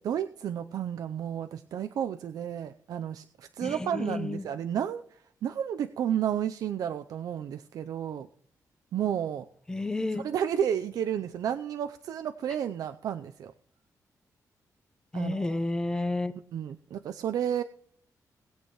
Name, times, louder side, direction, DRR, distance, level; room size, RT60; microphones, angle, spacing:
voice 1, 0.0-5.0 5.4-8.3 8.9-9.5 10.2-13.5 15.1-15.6 16.5-17.6, right 9 dB, 70° right, 9 dB, 0.5 m, -31 dB
voice 2, 3.6-4.5 9.7-10.2 15.1-16.3, left 2 dB, 10° left, 10 dB, 0.7 m, -31 dB
19.5 x 8.2 x 3.0 m, 0.63 s
wide cardioid pair, 180°, 6 cm